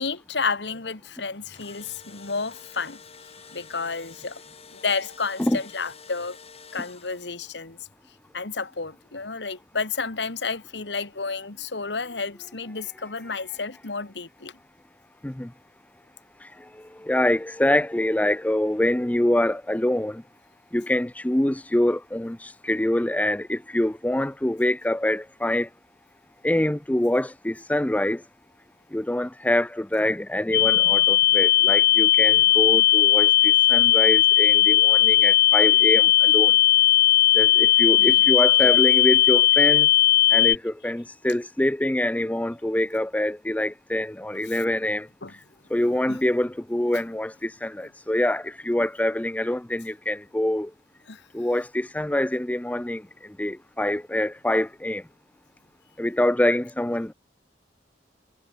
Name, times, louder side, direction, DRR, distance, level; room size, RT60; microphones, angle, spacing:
voice 1, 0.0-3.0 3.5-4.4 4.7-6.4 6.7-7.8 8.3-14.6 38.0-38.3 38.6-38.7 45.2-45.3 46.1-46.2 46.9-47.0 51.1-51.2, left 4 dB, 80° left, 1.8 m, -31 dB
Engine / Drill, 1.3-7.5, left 5 dB, 35° left, 6.7 m, -48 dB
voice 2, 17.0-20.2 20.7-25.7 26.4-28.2 28.9-36.6 37.3-39.9 40.3-45.1 45.7-50.7 51.3-53.0 53.4-55.0 56.0-57.1, left 1 dB, 10° left, 0.5 m, -25 dB
sound 1, 30.5-40.6, left 13 dB, 60° left, 1.2 m, -17 dB
head